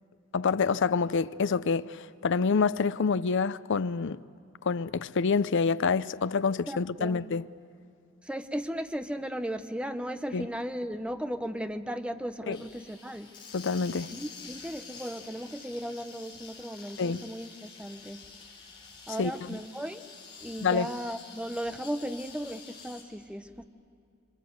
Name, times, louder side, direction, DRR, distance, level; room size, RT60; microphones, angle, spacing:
voice 1, 0.3-4.2 4.6-7.4 10.3-10.5 12.5-12.6 13.5-14.2 17.0-17.2 19.2-19.3 20.6-20.9, left 5 dB, 60° left, 0.5 m, -27 dB
voice 2, 6.7-7.2 8.2-13.3 14.1-18.2 19.1-20.1 20.4-23.6, equal, 5° right, 0.9 m, -36 dB
sound 1, 12.5-23.0, left 5 dB, 25° left, 5.0 m, -48 dB
26.5 x 24.5 x 8.0 m
head